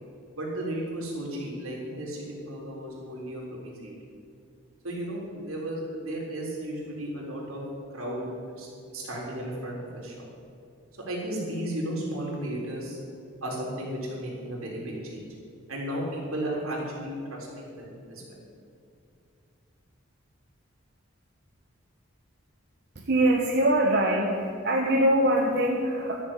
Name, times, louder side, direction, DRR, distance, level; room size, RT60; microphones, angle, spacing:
voice 1, 0.3-3.9 4.8-7.6 7.9-8.2 8.5-10.3 11.1-13.0 13.4-15.2 15.7-18.4, right 1 dB, 80° right, -3 dB, 3.8 m, -34 dB
voice 2, 22.9-26.2, right 1 dB, 50° right, -1 dB, 1.1 m, -23 dB
12.5 x 7.1 x 8.9 m, 2.4 s
head